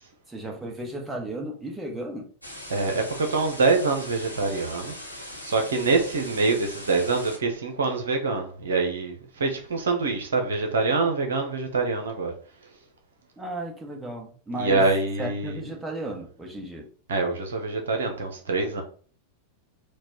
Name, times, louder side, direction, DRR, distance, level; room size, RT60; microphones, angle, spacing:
voice 1, 0.3-2.3 13.4-14.9 15.2-16.9, right 1 dB, 10° right, 1.2 m, -34 dB
sound 1, 2.4-7.4, left 1 dB, 90° left, 1.1 m, -40 dB
voice 2, 2.7-4.9 5.4-12.3 14.6-15.6 17.1-18.8, right 3 dB, 65° right, 0.9 m, -25 dB
4.5 x 2.4 x 4.4 m
figure-of-eight pair, 90°, 0 cm